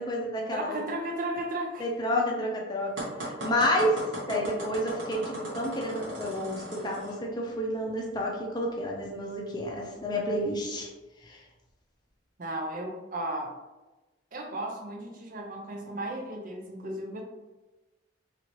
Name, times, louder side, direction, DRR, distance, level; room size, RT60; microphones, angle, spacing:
voice 1, 0.0-0.8 1.8-2.9 3.2-4.0 4.3-10.9 11.2-11.4, equal, 20° left, -1 dB, 0.5 m, -30 dB
voice 2, 0.5-1.9 12.4-13.5 14.3-17.2, right 1 dB, 45° right, 1 dB, 0.6 m, -35 dB
sound 1, 3.0-7.2, right 1 dB, 80° right, 1.0 m, -38 dB
2.8 x 2.8 x 3.0 m, 1.1 s
head